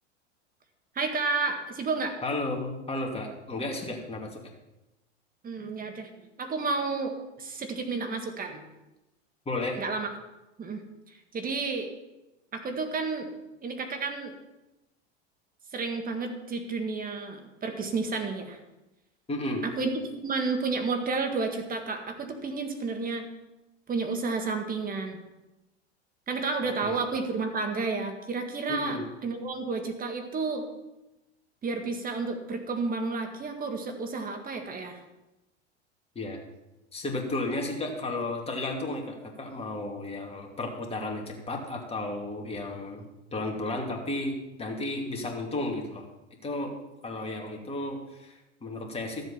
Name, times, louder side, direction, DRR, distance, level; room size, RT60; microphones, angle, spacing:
voice 1, 1.0-2.2 5.4-6.1 6.4-7.1 7.4-8.6 9.8-10.1 10.6-10.8 11.3-11.9 12.5-13.3 13.6-14.3 15.7-18.6 19.6-23.3 23.9-25.2 26.3-30.7 31.6-35.0, right 4 dB, 25° right, 5 dB, 1.8 m, -31 dB
voice 2, 2.2-4.4 9.5-9.8 19.3-19.6 26.8-27.0 28.7-29.0 36.1-36.4 36.9-43.1 43.3-46.1 46.4-46.7 47.0-49.2, left 2 dB, 15° left, 0 dB, 2.6 m, -33 dB
13.0 x 7.9 x 5.7 m, 0.99 s
hypercardioid pair, 100°, 34 cm